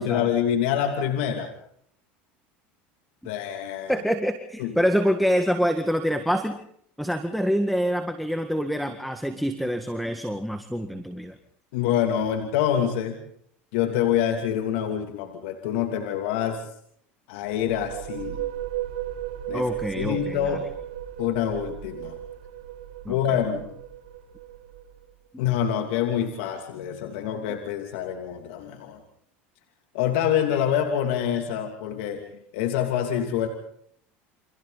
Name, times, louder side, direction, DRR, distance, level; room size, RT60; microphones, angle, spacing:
voice 1, 0.0-1.5 3.2-4.0 4.6-4.7 11.7-13.2 13.7-16.6 17.3-18.4 19.5-19.7 20.0-20.6 21.2-22.2 23.1-23.7 25.4-29.0 29.9-32.2 32.5-33.5, left 9 dB, 80° left, 5 dB, 2.9 m, -26 dB
voice 2, 3.9-6.6 7.0-11.4 19.5-20.6 23.1-23.2, equal, ahead, 8 dB, 1.9 m, -26 dB
sound 1, 17.5-25.1, right 12 dB, 80° right, 7.1 m, -35 dB
29.5 x 26.0 x 4.2 m, 0.66 s
supercardioid pair, 110°, 6 cm